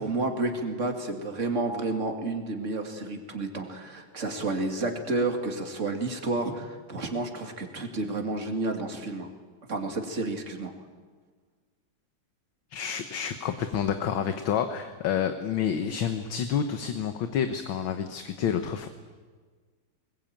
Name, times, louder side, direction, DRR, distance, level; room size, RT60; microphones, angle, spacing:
voice 1, 0.0-9.3 9.7-10.7, right 2 dB, 35° right, 4 dB, 2.5 m, -30 dB
voice 2, 12.7-18.9, left 8 dB, 70° left, 8 dB, 1.8 m, -29 dB
21.0 x 20.5 x 8.9 m, 1.5 s
omnidirectional pair, 2.3 m